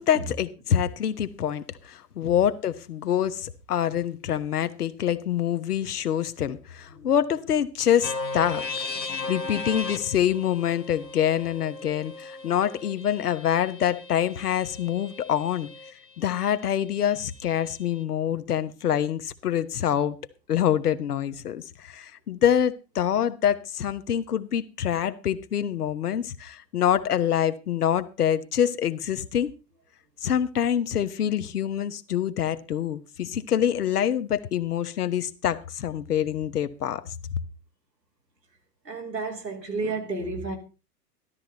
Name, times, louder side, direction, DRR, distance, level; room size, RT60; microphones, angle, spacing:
voice 1, 0.0-8.6 9.3-15.7 16.2-20.2 20.5-29.5 30.2-37.0, left 10 dB, 65° left, 1.2 m, -26 dB
sound 1, 8.0-15.9, left 3 dB, 85° left, 1.6 m, -36 dB
voice 2, 8.9-9.3 38.8-40.6, right 3 dB, 85° right, 3.0 m, -32 dB
13.0 x 12.5 x 4.0 m
figure-of-eight pair, 100°, 49 cm